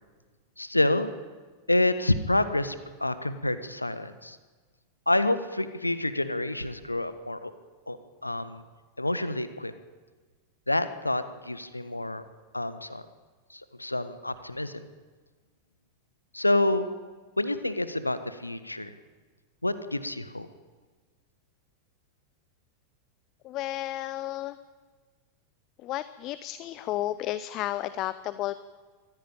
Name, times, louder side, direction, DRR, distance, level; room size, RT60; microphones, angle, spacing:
voice 1, 0.6-1.1 1.7-4.4 5.1-7.5 7.9-8.0 8.2-8.6 9.0-9.7 10.7-12.2 12.5-13.0 13.5-14.8 16.3-16.9 17.4-18.9 19.6-20.5, left 2 dB, 85° left, 12 dB, 1.4 m, -28 dB
voice 2, 23.4-24.6 25.8-28.6, left 14 dB, 35° left, 15 dB, 0.7 m, -32 dB
24.5 x 16.0 x 9.0 m, 1.4 s
figure-of-eight pair, 90°, 0 cm